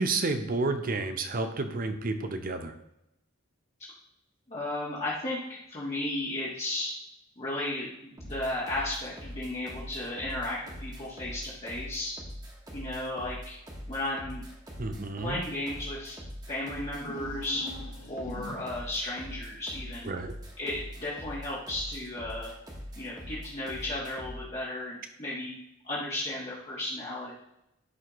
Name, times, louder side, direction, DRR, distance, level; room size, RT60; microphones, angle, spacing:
voice 1, 0.0-2.7 14.8-15.4 20.0-20.3, right 3 dB, 45° right, 7 dB, 0.7 m, -30 dB
voice 2, 4.5-6.9 7.4-12.1 12.7-13.6 13.9-14.4 15.2-16.2 16.5-17.7 18.1-20.1 20.6-22.5 23.0-25.5 25.8-27.3, left 1 dB, 30° left, -7 dB, 1.4 m, -34 dB
sound 1, 8.2-24.5, equal, 20° right, 1.3 m, -42 dB
sound 2, 17.0-19.0, equal, 85° left, 1.5 m, -42 dB
11.0 x 4.2 x 3.0 m, 0.85 s
head